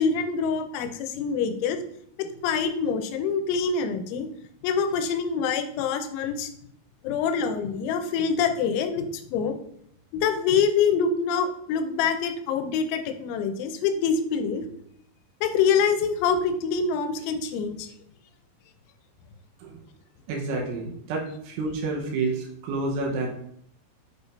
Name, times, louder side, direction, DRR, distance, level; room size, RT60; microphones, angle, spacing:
voice 1, 0.0-1.8 2.2-4.3 4.6-6.5 7.0-9.6 10.1-14.6 15.4-17.9, left 6 dB, 90° left, 8 dB, 3.1 m, -25 dB
voice 2, 20.3-23.3, right 3 dB, 90° right, -1 dB, 3.4 m, -29 dB
7.6 x 7.0 x 2.6 m, 0.68 s
omnidirectional pair, 5.3 m